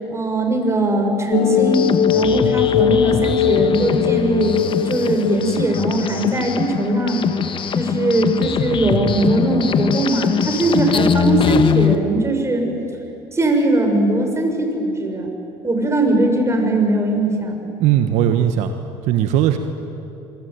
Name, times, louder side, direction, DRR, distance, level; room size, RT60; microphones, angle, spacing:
voice 1, 0.1-7.2 7.7-12.7 13.3-15.3 15.6-17.6, right 1 dB, 25° right, 4 dB, 6.5 m, -20 dB
sound 1, 1.3-6.0, left 8 dB, 60° left, 1.2 m, -20 dB
sound 2, 1.6-12.0, left 7 dB, 45° left, 1.5 m, -22 dB
voice 2, 17.8-18.7 19.0-19.6, right 11 dB, 75° right, 7 dB, 1.3 m, -17 dB
26.5 x 24.0 x 9.5 m, 3.0 s
supercardioid pair, 80°, 12 cm